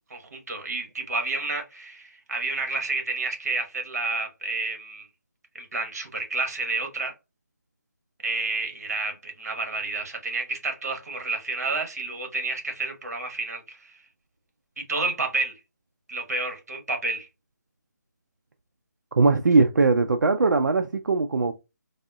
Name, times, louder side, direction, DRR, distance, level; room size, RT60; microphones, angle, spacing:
voice 1, 0.1-5.1 5.5-7.1 8.2-13.9 14.8-15.5 16.1-17.3, right 3 dB, 55° right, 1.1 m, -30 dB
voice 2, 19.2-21.5, right 3 dB, 80° right, 0.4 m, -20 dB
3.5 x 2.0 x 2.3 m
figure-of-eight pair, 160°, 10 cm